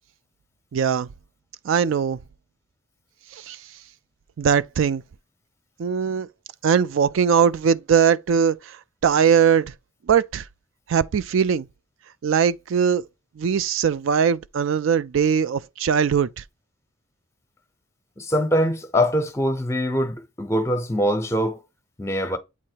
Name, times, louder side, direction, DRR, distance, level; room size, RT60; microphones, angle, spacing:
voice 1, 0.7-1.1 1.6-2.2 3.3-3.6 4.4-5.0 5.8-6.3 6.6-9.7 10.1-10.5 10.9-11.7 12.2-13.0 13.4-16.4, right 7 dB, 65° right, 0.4 m, -20 dB
voice 2, 18.2-21.6 22.0-22.4, equal, 15° left, 0.9 m, -23 dB
8.4 x 2.9 x 4.5 m
head